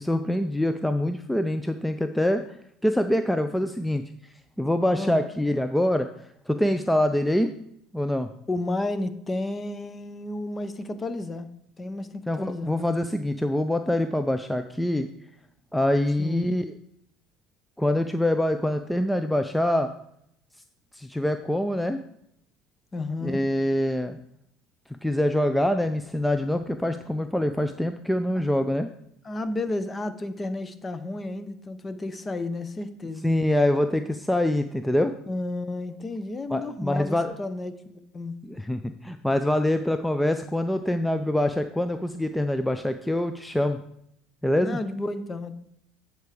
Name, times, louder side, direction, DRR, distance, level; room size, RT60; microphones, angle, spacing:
voice 1, 0.0-2.4 2.8-4.0 4.6-6.1 6.5-7.5 7.9-8.3 12.3-15.1 15.7-16.7 17.8-19.9 20.9-22.0 23.2-24.2 25.0-28.9 33.2-35.1 36.5-37.3 38.4-43.8 44.4-44.8, left 1 dB, 5° left, 0.5 m, -25 dB
voice 2, 8.5-11.5 11.8-12.8 16.2-16.5 22.9-23.4 29.2-33.3 35.3-38.3 44.6-45.5, left 2 dB, 25° left, 0.8 m, -32 dB
9.4 x 4.6 x 5.0 m
hypercardioid pair, 80°, 0 cm